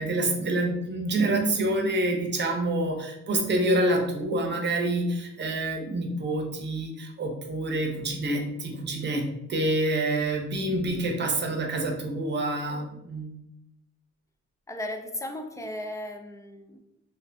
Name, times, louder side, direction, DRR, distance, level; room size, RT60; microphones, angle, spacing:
voice 1, 0.0-9.2 9.5-13.3, right 1 dB, 35° right, 2 dB, 0.7 m, -27 dB
voice 2, 14.7-16.8, left 1 dB, 10° left, 4 dB, 0.4 m, -36 dB
2.6 x 2.5 x 3.2 m, 0.86 s
cardioid pair, 90°, 30 cm